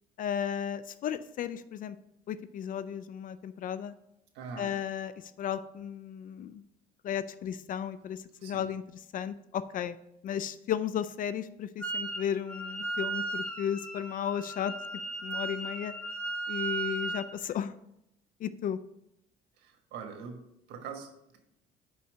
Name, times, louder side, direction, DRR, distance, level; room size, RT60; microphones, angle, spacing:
voice 1, 0.2-2.0 2.3-3.9 4.6-5.1 5.4-6.6 7.0-10.0 10.2-14.7 15.2-15.9 16.5-17.7 18.4-18.8, left 9 dB, 55° left, 14 dB, 0.4 m, -34 dB
voice 2, 4.3-4.7 8.4-8.7 19.6-20.4 20.7-21.4, right 6 dB, 85° right, 4 dB, 1.5 m, -43 dB
Wind instrument woodwind instrument, 11.8-12.2 12.5-17.3, right 3 dB, 5° left, 1.2 m, -36 dB
5.6 x 5.5 x 6.2 m, 0.82 s
cardioid pair, 110°, 17 cm